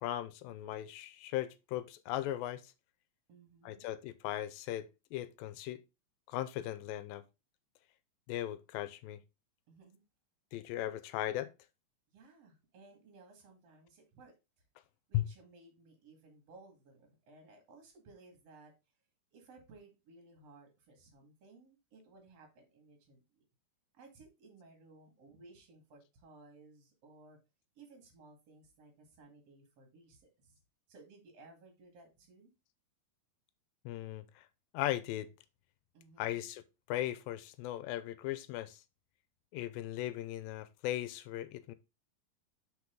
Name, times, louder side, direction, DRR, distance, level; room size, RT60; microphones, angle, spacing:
voice 1, 0.0-2.6 3.7-5.8 6.3-7.2 8.3-9.2 10.5-11.5 15.1-15.2 33.9-34.5 34.7-35.3 36.2-38.8 39.5-41.7, left 13 dB, 85° left, 2.4 m, -38 dB
voice 2, 3.3-3.9 9.7-10.0 12.1-14.3 15.1-18.7 19.3-23.5 23.9-27.4 27.7-30.6 30.9-32.5 35.9-36.5, right 3 dB, 45° right, 2.9 m, -59 dB
6.0 x 5.6 x 3.9 m
omnidirectional pair, 4.2 m